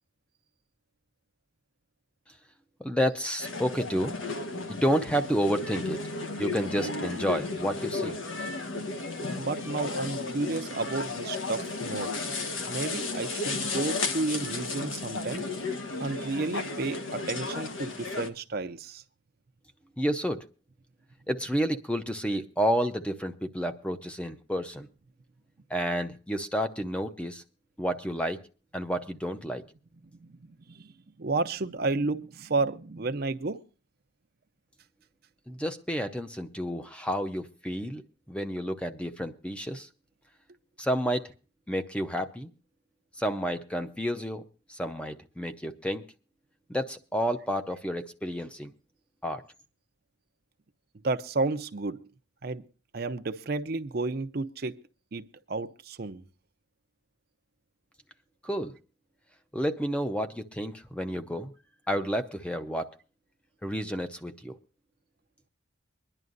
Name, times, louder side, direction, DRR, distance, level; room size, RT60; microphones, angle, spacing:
voice 1, 2.8-4.2 4.7-6.0 6.4-8.2 20.0-20.4 21.3-24.9 25.7-27.4 27.8-28.4 28.7-29.6 35.5-38.0 38.3-39.9 40.8-41.3 41.7-42.5 43.2-46.0 46.7-48.7 49.2-49.4 58.4-58.8 59.5-61.5 61.9-62.9 63.6-64.6, equal, 5° left, 0.6 m, -30 dB
sound 1, 3.4-18.3, left 3 dB, 80° left, 1.5 m, -34 dB
voice 2, 9.4-12.1 12.7-15.5 16.0-19.0 30.2-30.9 31.2-33.6 51.0-52.0 52.4-52.6 52.9-54.8 55.1-56.2, right 3 dB, 50° right, 0.6 m, -32 dB
23.5 x 11.0 x 2.5 m
head